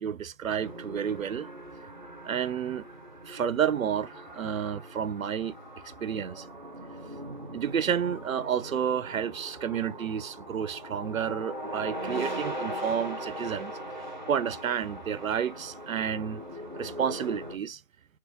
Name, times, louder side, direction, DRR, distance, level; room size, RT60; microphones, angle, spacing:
voice 1, 0.0-1.5 2.2-2.9 3.3-5.6 6.0-6.5 7.5-13.7 14.3-16.4 16.8-17.8, right 8 dB, 80° right, 0.5 m, -30 dB
sound 1, 0.6-17.6, equal, 35° right, 0.6 m, -40 dB
3.5 x 2.9 x 3.6 m
figure-of-eight pair, 170°, 40 cm